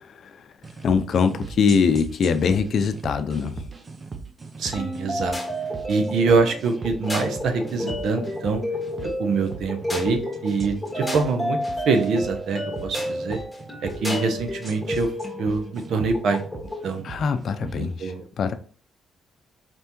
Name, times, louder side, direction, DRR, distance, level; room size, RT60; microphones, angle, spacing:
sound 1, 0.6-17.8, right 4 dB, 35° right, 0.7 m, -39 dB
voice 1, 0.8-3.6 17.0-18.1 18.4-18.5, left 6 dB, 60° left, 9 dB, 0.5 m, -22 dB
voice 2, 4.6-5.4 5.9-8.6 9.0-11.6 11.9-13.4 13.8-15.1 15.4-16.4 16.8-17.1 17.8-18.2, right 4 dB, 70° right, 6 dB, 0.8 m, -24 dB
sound 2, 4.7-16.9, left 1 dB, 5° left, 1.7 m, -31 dB
4.4 x 3.3 x 2.9 m, 0.43 s
cardioid pair, 90°, 0 cm